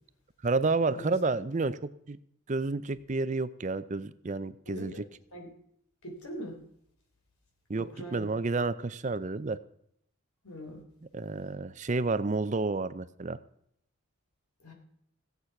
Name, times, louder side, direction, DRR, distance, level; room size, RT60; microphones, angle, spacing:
voice 1, 0.4-1.8 2.1-2.2 2.5-5.0 7.7-9.6 11.1-13.4, right 3 dB, 35° right, 14 dB, 0.5 m, -30 dB
voice 2, 4.7-5.0 5.3-5.5 6.0-6.6 7.7-8.3 10.4-10.8 14.6-14.7, equal, 90° left, 3 dB, 3.7 m, -42 dB
17.0 x 8.2 x 5.9 m, 0.71 s
head